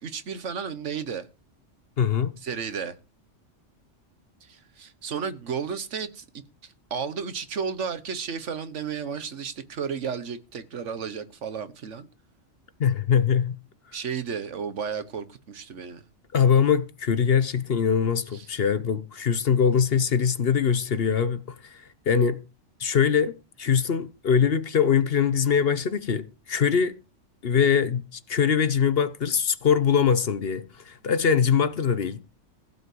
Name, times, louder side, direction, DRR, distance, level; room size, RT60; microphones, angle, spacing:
voice 1, 0.0-1.3 2.4-3.0 4.4-6.2 6.6-12.1 13.9-16.0 18.3-18.5, right 6 dB, 70° right, 1.4 m, -33 dB
voice 2, 2.0-2.3 12.8-13.6 16.3-22.4 22.8-23.3 23.6-26.9 27.4-32.2, left 7 dB, 55° left, 1.1 m, -23 dB
15.5 x 5.5 x 7.8 m
omnidirectional pair, 1.3 m